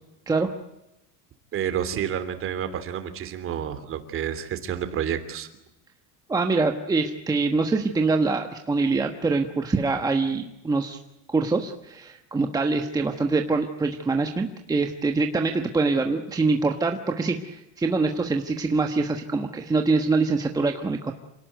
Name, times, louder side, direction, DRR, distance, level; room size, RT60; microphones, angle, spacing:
voice 1, 1.5-5.5, right 9 dB, 35° right, 10 dB, 3.0 m, -29 dB
voice 2, 6.3-11.0 11.3-21.1, right 3 dB, 10° right, 4 dB, 1.2 m, -24 dB
27.5 x 18.0 x 9.3 m, 0.90 s
cardioid pair, 170°, 35 cm